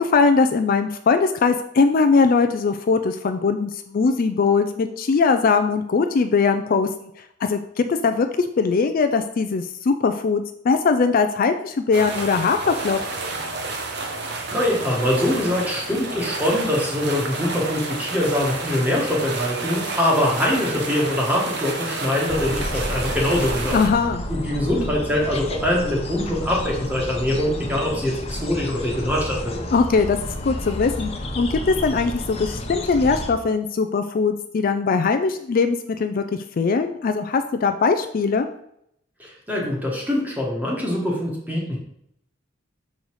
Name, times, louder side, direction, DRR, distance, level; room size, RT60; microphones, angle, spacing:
voice 1, 0.0-6.9 7.4-13.0 23.7-24.2 29.7-30.2 30.4-31.1 31.4-36.2 36.6-38.5, left 4 dB, 45° left, 8 dB, 0.4 m, -20 dB
sound 1, 11.9-23.9, right 3 dB, 60° right, 0.9 m, -30 dB
voice 2, 14.5-23.8 24.3-29.6 39.2-41.8, left 1 dB, 10° right, -2 dB, 1.6 m, -23 dB
sound 2, 22.3-33.3, left 1 dB, 30° left, 0.8 m, -31 dB
6.4 x 4.0 x 4.7 m, 0.74 s
head